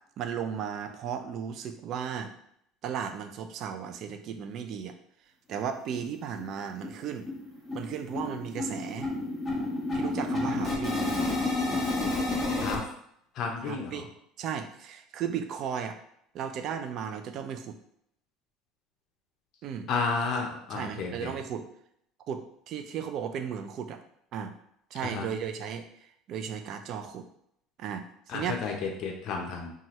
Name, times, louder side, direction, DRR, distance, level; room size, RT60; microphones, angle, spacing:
voice 1, 0.2-2.3 2.8-4.9 5.5-7.3 7.7-9.1 9.9-11.1 13.6-14.1 14.4-16.0 16.3-17.7 19.6-19.9 20.7-21.7 22.3-24.0 24.3-24.5 24.9-25.9 26.3-27.2 27.8-28.6, right 8 dB, 55° right, 7 dB, 0.4 m, -35 dB
sound 1, 5.5-5.6 5.9-6.0 6.4-6.6 6.8-12.8, left 2 dB, 20° left, 1.1 m, -30 dB
voice 2, 13.4-14.0 19.9-21.3 25.0-25.2 28.3-29.7, left 4 dB, 55° left, 1 dB, 0.5 m, -32 dB
2.7 x 2.4 x 3.0 m, 0.72 s
supercardioid pair, 95°, 0 cm